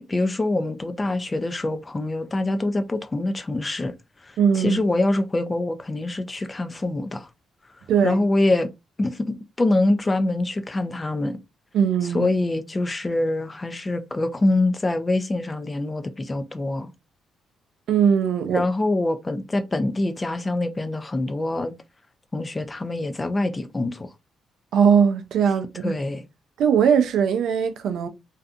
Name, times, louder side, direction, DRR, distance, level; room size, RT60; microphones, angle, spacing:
voice 1, 0.1-3.9 4.2-7.3 8.0-8.7 9.0-11.4 12.1-16.9 18.5-21.7 22.3-24.1 25.8-26.2, left 2 dB, 20° left, 0.4 m, -24 dB
voice 2, 4.4-4.8 7.9-8.2 11.7-12.3 17.9-18.6 24.7-26.0 26.6-28.1, right 7 dB, 75° right, 0.4 m, -20 dB
2.6 x 2.4 x 2.4 m
cardioid pair, 90°, 0 cm